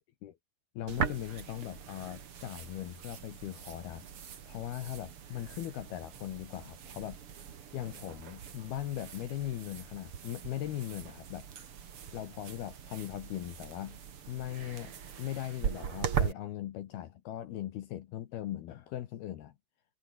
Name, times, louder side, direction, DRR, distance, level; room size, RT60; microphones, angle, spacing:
voice 1, 0.8-4.1 4.5-7.2 7.7-11.5 12.1-14.0 14.3-19.5, left 13 dB, 65° left, 2.7 m, -39 dB
sound 1, 0.9-16.3, right 8 dB, 70° right, 1.3 m, -40 dB
omnidirectional pair, 5.7 m